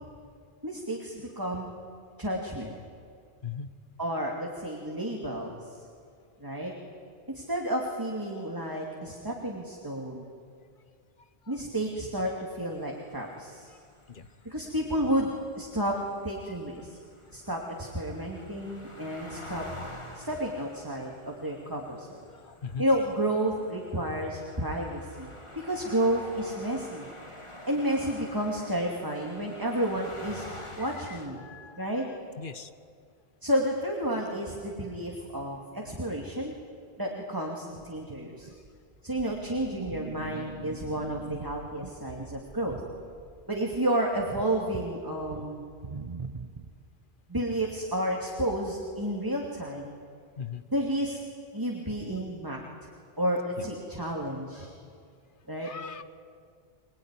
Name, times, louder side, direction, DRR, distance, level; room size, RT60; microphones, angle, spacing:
voice 1, 0.6-1.7 2.2-2.7 4.0-5.7 6.4-6.7 7.3-10.3 11.5-13.7 14.4-16.0 16.2-17.0 17.3-19.7 20.1-22.2 22.8-27.1 27.7-30.5 30.8-31.4 31.8-32.0 33.4-36.5 37.0-38.5 39.0-42.8 43.5-45.6 47.3-50.0 50.7-51.2 51.5-52.9 53.2-54.7 55.5-55.7, right 1 dB, 20° right, -1 dB, 2.6 m, -31 dB
sound 1, 12.7-31.3, left 1 dB, 30° left, 2.6 m, -47 dB
voice 2, 22.3-22.8 30.5-30.9 31.4-32.0 32.4-32.7 50.4-50.6 53.6-53.7 55.6-56.0, left 6 dB, 55° left, 12 dB, 1.2 m, -40 dB
sound 2, 37.7-46.8, right 4 dB, 35° right, 1.0 m, -43 dB
26.0 x 20.5 x 9.9 m, 2.2 s
omnidirectional pair, 1.1 m